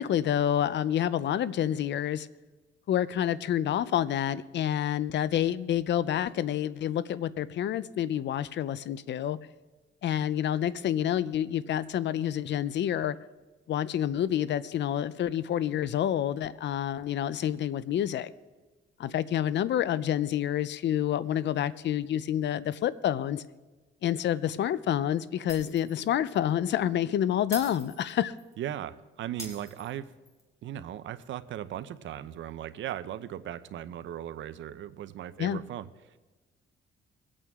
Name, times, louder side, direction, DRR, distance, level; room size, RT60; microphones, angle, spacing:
voice 1, 0.0-2.3 2.9-9.4 10.0-13.2 13.7-18.3 19.0-23.4 24.0-28.3 35.4-35.6, left 10 dB, 65° left, 17 dB, 0.6 m, -28 dB
Shatter, 25.5-26.1 26.4-26.5 27.5-28.5 29.4-30.4, equal, 15° left, 3.9 m, -43 dB
voice 2, 28.6-30.1 30.6-36.2, right 11 dB, 70° right, 13 dB, 0.8 m, -38 dB
23.0 x 8.7 x 3.6 m, 1.2 s
cardioid pair, 90°, 20 cm